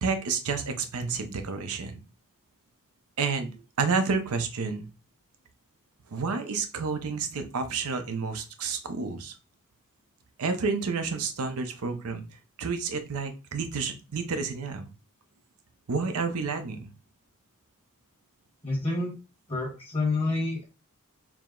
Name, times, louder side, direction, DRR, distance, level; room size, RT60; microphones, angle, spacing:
voice 1, 0.0-2.0 3.2-3.5 3.8-4.9 6.1-9.3 10.4-12.2 12.6-14.9 15.9-16.9, right 4 dB, 80° right, 8 dB, 0.6 m, -30 dB
voice 2, 18.6-19.1 19.5-20.6, left 2 dB, 25° left, -2 dB, 1.2 m, -28 dB
4.8 x 2.0 x 3.7 m, 0.32 s
head